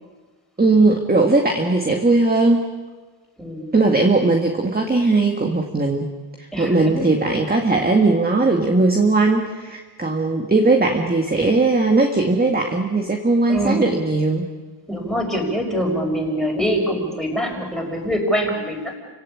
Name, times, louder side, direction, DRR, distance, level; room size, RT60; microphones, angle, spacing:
voice 1, 0.6-2.7 3.7-6.1 6.4-14.5, right 3 dB, 20° right, 3 dB, 2.0 m, -18 dB
voice 2, 3.4-3.8 6.5-7.0 13.5-13.9 14.9-19.0, equal, ahead, 0 dB, 6.0 m, -24 dB
29.5 x 17.5 x 8.7 m, 1.3 s
cardioid pair, 115°, 49 cm